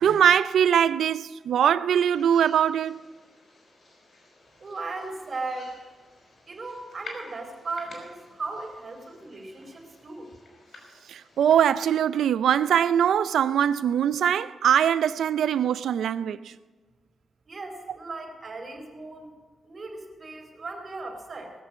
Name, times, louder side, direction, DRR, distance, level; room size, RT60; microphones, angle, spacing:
voice 1, 0.0-3.0 11.1-16.5, right 9 dB, 90° right, 0.4 m, -22 dB
sound 1, 2.0-11.6, left 3 dB, 60° left, 5.5 m, -50 dB
voice 2, 4.6-5.8 6.5-10.3 17.5-19.4 19.6-21.5, right 3 dB, 45° right, 3.8 m, -37 dB
20.0 x 6.8 x 7.4 m
cardioid pair, 85°, 0 cm